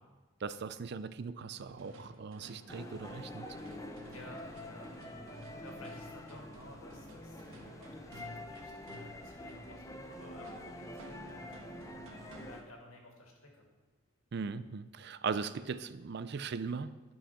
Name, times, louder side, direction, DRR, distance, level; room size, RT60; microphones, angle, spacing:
voice 1, 0.4-3.5 14.3-16.9, right 5 dB, 50° right, 14 dB, 0.4 m, -39 dB
sound 1, 1.5-12.8, equal, 70° right, 1.3 m, -54 dB
sound 2, 2.7-12.6, left 1 dB, 15° left, 0.7 m, -47 dB
voice 2, 4.0-5.0 5.6-12.0 12.3-13.7, left 1 dB, 85° left, 0 dB, 2.1 m, -54 dB
11.5 x 5.6 x 5.7 m, 1.2 s
head